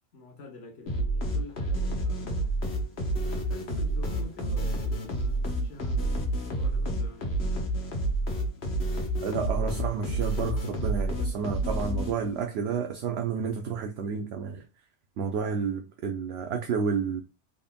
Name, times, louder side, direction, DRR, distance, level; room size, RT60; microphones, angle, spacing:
voice 1, 0.1-2.5 3.2-7.4, left 3 dB, 80° left, 1.3 m, -47 dB
sound 1, 0.9-12.5, right 1 dB, 65° left, 1.2 m, -29 dB
voice 2, 9.2-14.6 15.2-17.2, right 6 dB, 70° right, 0.8 m, -30 dB
3.6 x 3.5 x 2.2 m
omnidirectional pair, 1.2 m